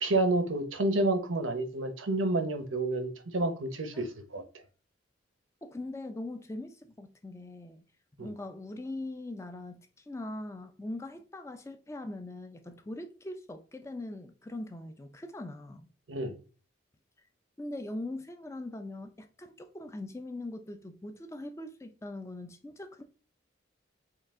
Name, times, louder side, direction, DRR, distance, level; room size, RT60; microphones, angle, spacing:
voice 1, 0.0-4.4 8.2-8.3 16.1-16.3, right 2 dB, 90° right, 0.8 m, -29 dB
voice 2, 5.6-7.8 8.2-15.9 17.6-23.0, left 2 dB, 15° left, 0.4 m, -41 dB
4.6 x 2.4 x 3.5 m
head